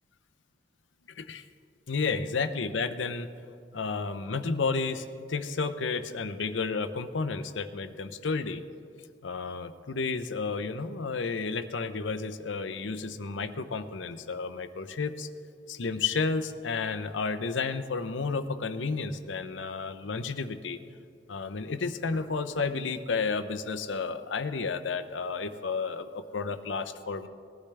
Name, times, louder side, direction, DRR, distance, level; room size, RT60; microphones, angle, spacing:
voice 1, 1.9-3.3 3.7-8.6 9.2-15.3 15.7-20.8 21.3-27.3, left 4 dB, 85° left, 11 dB, 0.7 m, -32 dB
19.0 x 12.0 x 3.4 m, 2.4 s
head